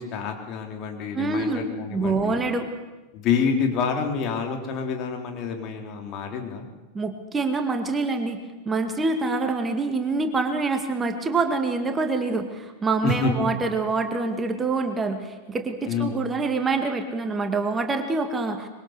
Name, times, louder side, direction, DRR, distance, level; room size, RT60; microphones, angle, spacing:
voice 1, 0.0-2.4 3.1-6.7 13.0-13.3 15.9-16.1, left 5 dB, 35° left, 3 dB, 3.7 m, -27 dB
voice 2, 1.1-2.7 6.9-8.4 8.7-18.7, right 3 dB, 15° right, 6 dB, 2.1 m, -26 dB
24.0 x 23.0 x 6.7 m, 1.2 s
figure-of-eight pair, 90°, 0 cm